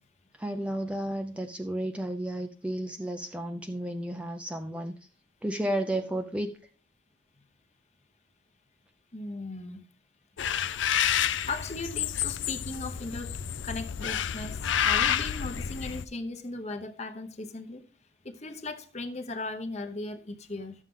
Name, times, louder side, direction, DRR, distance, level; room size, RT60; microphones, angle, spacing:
voice 1, 0.4-4.9 5.4-6.5 10.7-10.8, right 1 dB, 5° right, 0.4 m, -32 dB
voice 2, 9.1-9.8 11.5-13.3 13.6-17.8 18.2-20.7, left 2 dB, 35° left, 0.9 m, -37 dB
sound 1, 10.4-16.0, left 9 dB, 70° left, 0.4 m, -29 dB
12.0 x 7.3 x 3.7 m
head